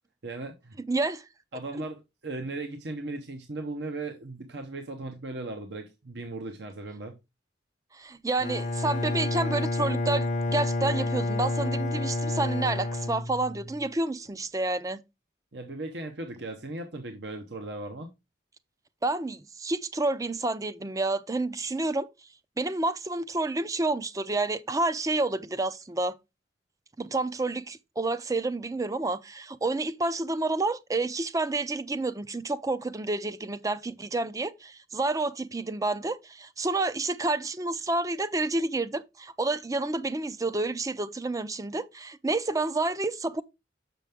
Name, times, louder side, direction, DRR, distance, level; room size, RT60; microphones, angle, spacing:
voice 1, 0.2-0.8 1.5-7.2 15.5-18.1, right 2 dB, 70° right, 0.9 m, -37 dB
voice 2, 0.9-1.2 7.9-15.0 19.0-22.1 22.6-26.1 27.0-43.4, right 2 dB, 20° right, 0.5 m, -29 dB
Bowed string instrument, 8.4-13.9, left 2 dB, 40° left, 0.6 m, -29 dB
6.7 x 6.0 x 3.5 m
head